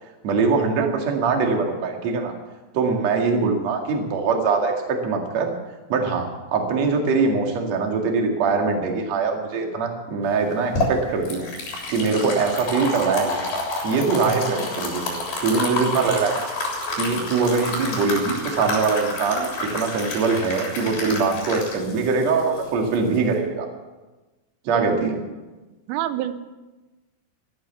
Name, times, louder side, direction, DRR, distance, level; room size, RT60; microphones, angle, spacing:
voice 1, 0.2-2.3 2.7-5.5 5.9-11.5 11.9-13.4 13.8-16.5 16.9-23.7 24.6-25.2, right 4 dB, 45° right, 2 dB, 2.4 m, -22 dB
voice 2, 3.1-3.5 24.7-25.2 25.9-26.4, right 12 dB, 85° right, 11 dB, 3.3 m, -28 dB
pour a cup of coffee, 10.4-23.3, left 2 dB, 50° left, 5.1 m, -29 dB
14.5 x 13.0 x 7.2 m, 1.2 s
omnidirectional pair, 5.7 m